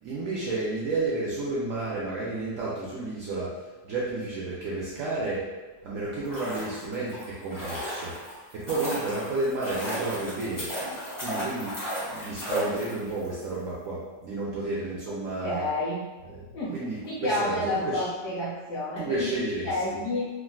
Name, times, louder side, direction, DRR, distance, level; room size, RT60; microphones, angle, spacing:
voice 1, 0.0-3.5 3.8-5.4 5.8-8.1 8.5-11.8 12.1-15.7 16.3-16.4 16.7-18.0 19.0-19.8, right 2 dB, 75° right, -7 dB, 0.7 m, -31 dB
sound 1, 6.1-13.3 13.5-13.6, equal, 30° left, 0.4 m, -35 dB
voice 2, 15.4-16.0 16.5-16.8 17.0-19.3 19.6-20.3, left 1 dB, 70° left, -7 dB, 1.3 m, -29 dB
3.6 x 2.2 x 2.3 m, 1.2 s
omnidirectional pair, 1.9 m